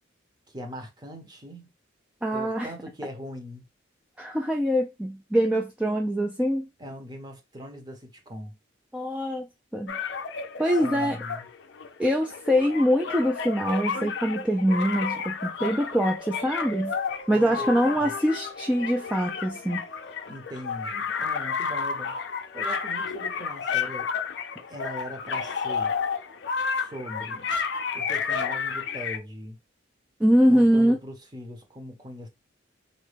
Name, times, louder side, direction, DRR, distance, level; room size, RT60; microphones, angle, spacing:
voice 1, 0.5-1.7 2.3-3.7 6.8-8.6 10.7-11.5 17.3-18.1 20.3-22.1 22.5-24.1 24.7-25.9 26.7-27.5 27.9-29.6 30.5-32.3, equal, 20° right, 0.7 m, -40 dB
voice 2, 2.2-2.7 4.2-6.7 8.9-9.5 9.7-10.0 10.6-11.2 12.0-16.9 17.3-19.8 30.2-31.0, equal, 5° right, 0.3 m, -24 dB
sound 1, 9.9-29.2, left 5 dB, 60° left, 0.4 m, -31 dB
Dog, 15.7-21.3, left 2 dB, 45° left, 0.9 m, -42 dB
3.9 x 2.2 x 3.2 m
head